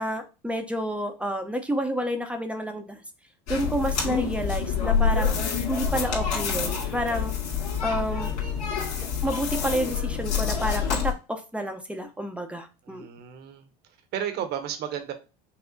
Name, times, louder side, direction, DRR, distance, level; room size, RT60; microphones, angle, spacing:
voice 1, 0.0-3.0 3.5-5.3 5.7-7.3 7.8-8.3 9.2-13.1, right 1 dB, 5° right, 0.6 m, -29 dB
sound 1, 3.5-11.1, left 6 dB, 75° left, 2.0 m, -27 dB
voice 2, 12.8-13.7 14.1-15.1, right 9 dB, 55° right, 1.0 m, -33 dB
5.7 x 2.0 x 3.8 m
supercardioid pair, 100°, 20 cm